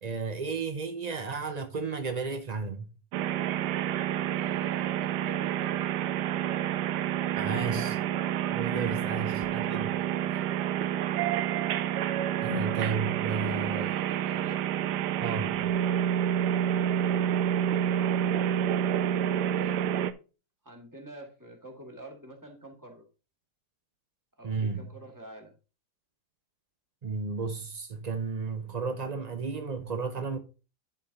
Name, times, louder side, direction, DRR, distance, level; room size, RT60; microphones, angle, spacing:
voice 1, 0.0-2.9 7.3-8.0 8.5-10.0 12.4-13.9 15.2-15.6 24.4-25.0 27.0-30.4, right 4 dB, 55° right, 0.4 m, -33 dB
sound 1, 3.1-20.1, right 10 dB, 90° right, 1.2 m, -28 dB
voice 2, 4.3-6.0 10.0-11.0 13.4-14.6 16.8-17.3 17.6-18.6 19.5-20.2 20.6-23.1 24.4-25.5, right 1 dB, 10° right, 1.9 m, -48 dB
10.5 x 4.7 x 4.0 m
omnidirectional pair, 1.8 m